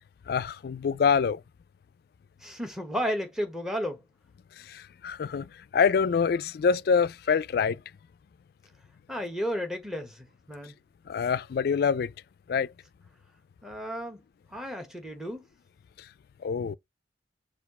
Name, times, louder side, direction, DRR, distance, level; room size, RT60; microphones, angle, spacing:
voice 1, 0.3-1.4 4.7-7.8 11.1-12.1 12.5-12.7 16.4-16.7, left 6 dB, 60° left, 0.3 m, -25 dB
voice 2, 2.4-4.0 9.1-10.7 13.6-14.2 14.5-15.4, equal, 5° right, 1.0 m, -33 dB
4.3 x 2.4 x 4.1 m
head